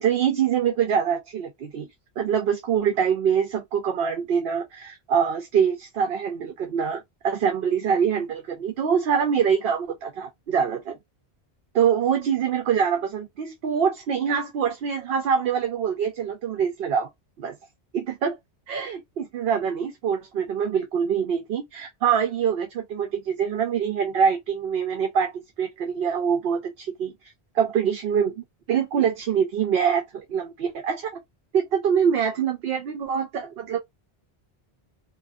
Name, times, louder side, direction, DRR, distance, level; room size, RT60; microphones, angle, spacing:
voice 1, 0.0-1.9 2.2-11.0 11.7-17.1 17.4-17.5 17.9-18.4 18.7-27.1 27.5-31.2 31.5-33.8, right 7 dB, 70° right, 0.7 m, -24 dB
2.7 x 2.5 x 2.3 m
omnidirectional pair, 1.1 m